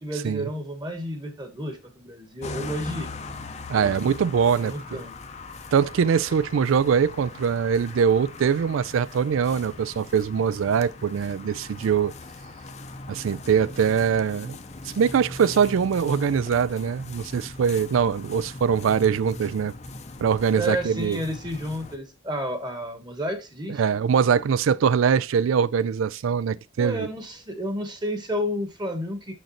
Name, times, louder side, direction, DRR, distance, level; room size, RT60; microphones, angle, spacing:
voice 1, 0.0-3.1 3.8-4.2 4.6-5.1 20.5-23.8 26.8-29.3, equal, 20° right, 1.1 m, -31 dB
sound 1, 2.4-22.0, left 3 dB, 35° left, 0.6 m, -40 dB
voice 2, 3.7-5.0 5.7-12.1 13.1-14.6 14.8-19.7 20.2-21.2 23.7-27.1, right 7 dB, 70° right, 0.3 m, -22 dB
6.5 x 6.3 x 3.0 m
head